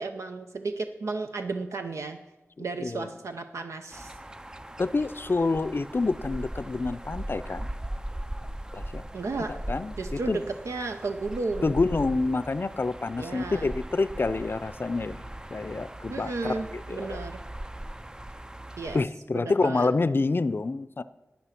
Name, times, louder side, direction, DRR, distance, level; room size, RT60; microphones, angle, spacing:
voice 1, 0.0-2.2 2.6-4.1 9.1-9.6 10.0-11.7 13.2-13.7 16.1-17.4 18.8-19.0 19.3-19.9, right 3 dB, 85° right, 6 dB, 0.6 m, -33 dB
sound 1, 3.9-19.0, right 1 dB, 15° right, 0.4 m, -39 dB
voice 2, 4.8-7.7 8.7-9.0 9.7-10.4 11.6-17.2 18.9-21.0, left 3 dB, 50° left, 14 dB, 0.5 m, -28 dB
11.5 x 9.0 x 5.8 m, 1.0 s
cardioid pair, 50°, 5 cm